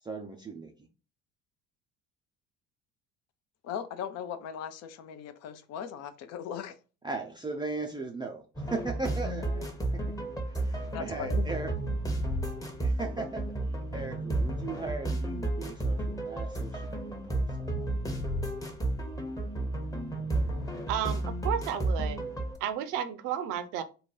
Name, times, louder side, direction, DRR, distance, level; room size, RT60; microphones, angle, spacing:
voice 1, 0.0-0.7 7.0-9.7 9.9-10.0 10.5-12.0 12.8-13.4 13.9-17.9, right 3 dB, 10° right, 1 dB, 0.5 m, -38 dB
voice 2, 3.6-6.8 10.9-11.5, left 8 dB, 40° left, 11 dB, 0.6 m, -38 dB
sound 1, 8.6-22.6, right 2 dB, 10° left, 0.9 m, -32 dB
voice 3, 20.9-22.2 22.6-23.8, right 9 dB, 50° right, 9 dB, 0.7 m, -32 dB
3.8 x 2.2 x 4.3 m, 0.33 s
figure-of-eight pair, 60°, 42 cm